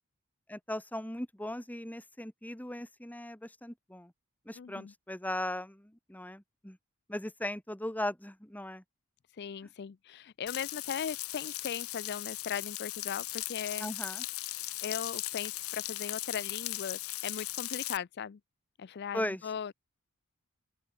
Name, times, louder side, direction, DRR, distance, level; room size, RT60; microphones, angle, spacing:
voice 1, 0.5-4.1 4.4-6.8 7.1-8.8 13.8-14.2 19.1-19.4, left 1 dB, 5° left, 1.5 m, -38 dB
voice 2, 4.6-4.9 9.3-13.9 14.8-18.4 18.8-19.7, left 7 dB, 50° left, 0.4 m, -38 dB
Frying (food), 10.5-18.0, left 17 dB, 75° left, 1.5 m, -38 dB
open air
head